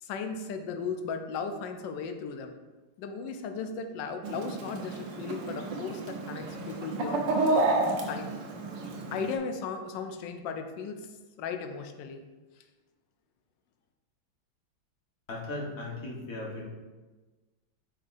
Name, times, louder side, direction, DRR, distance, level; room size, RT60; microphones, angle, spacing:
voice 1, 0.0-2.6 3.0-7.3 8.1-8.3 9.1-11.0 11.4-12.2, left 5 dB, 70° left, 6 dB, 1.2 m, -36 dB
Chicken rooster, 4.2-9.3, right 2 dB, 65° right, 1.5 m, -30 dB
voice 2, 15.3-16.6, left 2 dB, 45° left, -3 dB, 1.7 m, -37 dB
8.7 x 5.4 x 2.6 m, 1.3 s
omnidirectional pair, 2.2 m